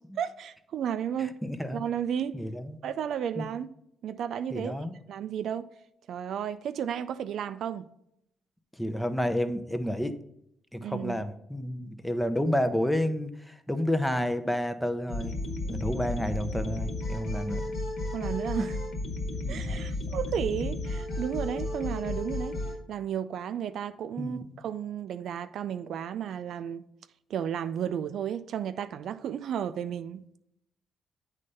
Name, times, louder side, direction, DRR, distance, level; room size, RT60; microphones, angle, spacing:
voice 1, 0.2-1.4 1.7-2.4 2.8-3.7 4.0-4.7 5.1-5.7 6.1-7.9 10.8-11.2 18.1-18.7 19.5-22.6 22.9-26.8 27.3-30.2, right 9 dB, 70° right, 0.3 m, -33 dB
voice 2, 1.2-1.8 2.3-2.8 3.4-3.5 4.5-4.9 8.8-10.2 10.7-15.3 15.7-17.7 18.6-18.7 19.4-19.8 24.2-24.5, equal, 5° left, 0.6 m, -30 dB
sound 1, 15.1-22.8, left 1 dB, 60° left, 1.6 m, -33 dB
8.2 x 3.3 x 5.4 m
cardioid pair, 90°, 0 cm